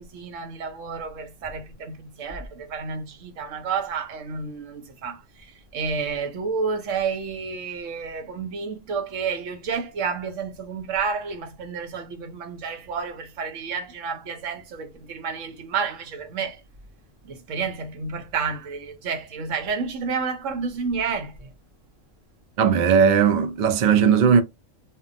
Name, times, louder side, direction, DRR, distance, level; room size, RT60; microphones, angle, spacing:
voice 1, 0.0-5.2 5.7-16.6 17.3-21.5, right 5 dB, 85° right, 1.1 m, -30 dB
voice 2, 22.6-24.4, right 7 dB, 60° right, 0.5 m, -18 dB
2.7 x 2.2 x 2.5 m
omnidirectional pair, 1.3 m